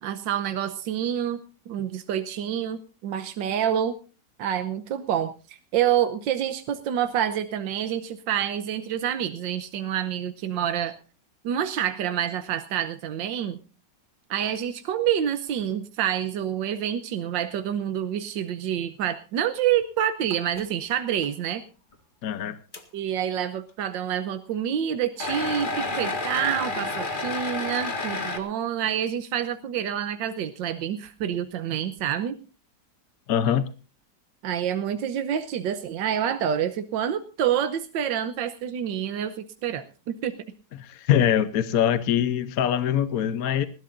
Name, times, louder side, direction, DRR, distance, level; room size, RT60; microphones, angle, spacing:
voice 1, 0.0-4.0 4.4-10.9 11.4-13.6 14.3-21.6 22.9-32.4 34.4-40.3, right 9 dB, 85° right, 1.6 m, -27 dB
sound 1, 20.3-20.7 21.2-21.3 21.9-22.0 22.7-22.8 25.2-28.4, left 2 dB, 30° left, 1.8 m, -30 dB
voice 2, 22.2-22.6 33.3-33.6 40.8-43.7, left 9 dB, 60° left, 1.1 m, -23 dB
20.5 x 15.5 x 2.6 m
omnidirectional pair, 1.9 m